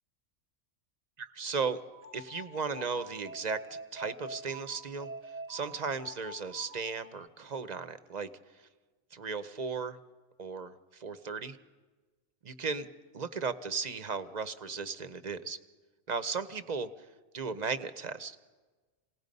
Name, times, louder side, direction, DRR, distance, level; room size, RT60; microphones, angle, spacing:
voice 1, 1.2-1.8 2.1-5.1 5.5-8.7 9.1-10.0 10.4-11.6 12.4-12.9 13.1-15.6 16.1-17.1 17.3-18.4, right 5 dB, 40° right, 11 dB, 0.9 m, -36 dB
sound 1, 1.9-7.3, right 1 dB, 90° right, 1.6 m, -46 dB
28.5 x 18.0 x 5.4 m, 1.3 s
omnidirectional pair, 1.2 m